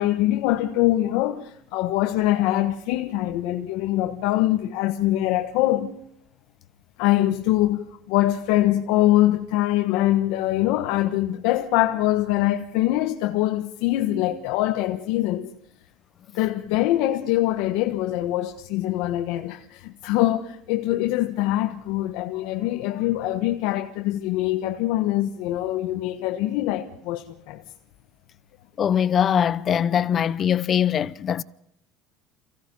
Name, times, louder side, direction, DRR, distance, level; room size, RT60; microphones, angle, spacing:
voice 1, 0.0-5.9 7.0-15.5 16.3-27.6, left 15 dB, 75° left, 1.4 m, -23 dB
voice 2, 28.8-31.4, left 9 dB, 35° left, 0.7 m, -22 dB
29.0 x 17.0 x 5.6 m
cardioid pair, 135°, 0 cm